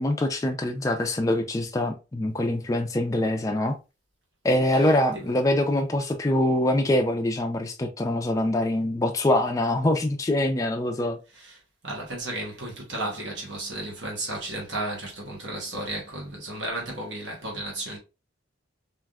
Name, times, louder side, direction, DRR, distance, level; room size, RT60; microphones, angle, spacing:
voice 1, 0.0-3.7 4.4-11.2, left 1 dB, 15° left, 0.3 m, -24 dB
voice 2, 4.8-5.3 11.3-11.6 11.8-18.0, right 1 dB, 65° right, 1.0 m, -34 dB
3.4 x 2.5 x 2.2 m
head